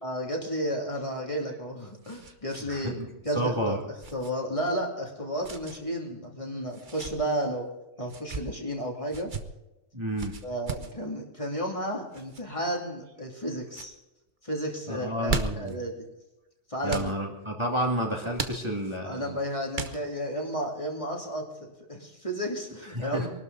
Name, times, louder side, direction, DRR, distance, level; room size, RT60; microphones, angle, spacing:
voice 1, 0.0-3.8 4.1-7.7 8.0-9.3 10.4-13.9 14.4-16.1 16.7-17.1 19.0-23.3, equal, 25° left, -1 dB, 2.8 m, -32 dB
sound 1, 1.3-2.7 3.0-3.1 4.0-4.3 5.4-5.8 6.7-7.1 8.0-8.4 9.1-9.4 10.2-10.9 12.1-12.4 13.1-13.4 13.7-13.9 15.0-15.8 16.9-17.1 18.3-19.0 19.7-20.3, right 4 dB, 45° right, 1.2 m, -36 dB
voice 2, 2.7-3.1 3.3-3.8 9.9-10.3 14.9-15.7 16.8-19.2 22.9-23.3, equal, 25° right, -1 dB, 2.4 m, -30 dB
23.5 x 12.5 x 4.0 m, 0.95 s
omnidirectional pair, 1.2 m